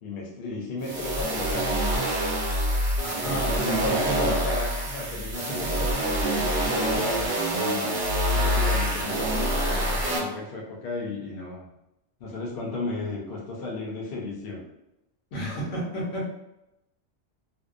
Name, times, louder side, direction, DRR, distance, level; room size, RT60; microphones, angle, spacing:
voice 1, 0.0-1.9 3.2-5.9 6.4-8.0 8.3-11.7 12.2-14.6, left 2 dB, 55° left, -3 dB, 0.8 m, -34 dB
sound 1, 0.8-10.2, right 1 dB, 65° right, 0.9 m, -26 dB
voice 2, 3.0-4.4 5.5-5.6 6.0-6.1 6.3-6.4 6.9-7.0 15.3-16.3, equal, 75° left, -4 dB, 1.1 m, -31 dB
2.7 x 2.0 x 2.4 m, 0.91 s
omnidirectional pair, 1.3 m